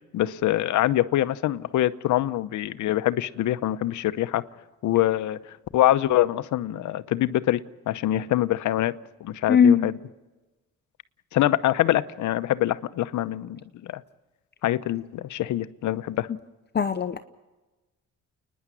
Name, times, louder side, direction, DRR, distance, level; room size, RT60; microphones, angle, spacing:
voice 1, 0.1-4.4 4.8-5.4 5.7-8.9 9.2-9.9 11.3-14.0 14.6-16.3, left 13 dB, 75° left, 14 dB, 0.8 m, -24 dB
voice 2, 9.5-9.9 16.7-17.2, left 7 dB, 35° left, 9 dB, 0.9 m, -19 dB
29.0 x 10.5 x 9.7 m, 1.1 s
cardioid pair, 90°, 30 cm